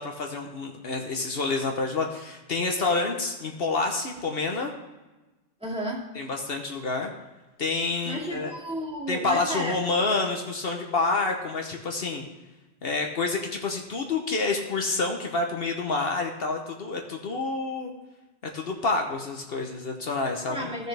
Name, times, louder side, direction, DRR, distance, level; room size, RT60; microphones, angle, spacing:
voice 1, 0.0-4.7 6.1-7.1 7.6-8.5 9.1-12.2 12.8-17.9 18.5-20.7, left 3 dB, 65° left, 2 dB, 1.1 m, -28 dB
voice 2, 5.6-6.0 8.1-9.8 20.5-20.9, equal, 5° right, -4 dB, 2.3 m, -32 dB
15.0 x 6.6 x 3.4 m, 1.1 s
omnidirectional pair, 1.1 m